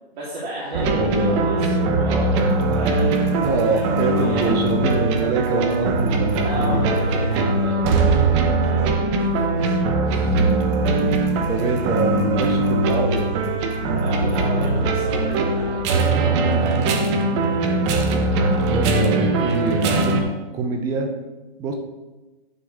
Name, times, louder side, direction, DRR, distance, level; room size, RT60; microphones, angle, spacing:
voice 1, 0.1-4.5 6.3-9.7 10.0-10.4 14.0-17.3, right 1 dB, 50° right, -7 dB, 3.2 m, -33 dB
sound 1, 0.7-20.2, right 2 dB, 30° right, 1.0 m, -21 dB
voice 2, 0.9-1.5 2.7-2.8 3.4-6.8 11.5-13.5 18.7-20.2 20.5-21.1 21.6-21.7, right 4 dB, 10° right, 4 dB, 0.5 m, -25 dB
11.5 x 6.2 x 3.6 m, 1.1 s
hypercardioid pair, 145°, 31 cm